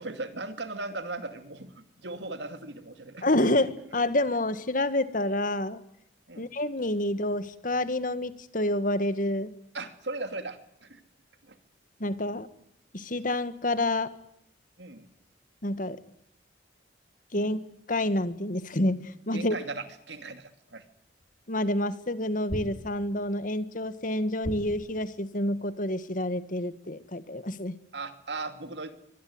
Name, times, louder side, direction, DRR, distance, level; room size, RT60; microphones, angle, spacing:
voice 1, 0.0-3.5 6.3-6.5 9.7-11.0 11.4-11.6 13.1-13.2 14.8-15.1 17.3-17.5 19.3-20.8 27.9-29.0, right 3 dB, 70° right, 9 dB, 2.6 m, -38 dB
voice 2, 3.2-5.8 6.4-9.5 12.0-12.5 12.9-14.1 15.6-16.0 17.3-17.6 17.9-19.6 21.5-27.7, left 1 dB, 45° left, 13 dB, 1.7 m, -28 dB
sound 1, 21.2-21.3 22.5-23.3 24.4-25.2, equal, 10° left, 3.3 m, -38 dB
25.0 x 19.0 x 9.7 m, 0.74 s
head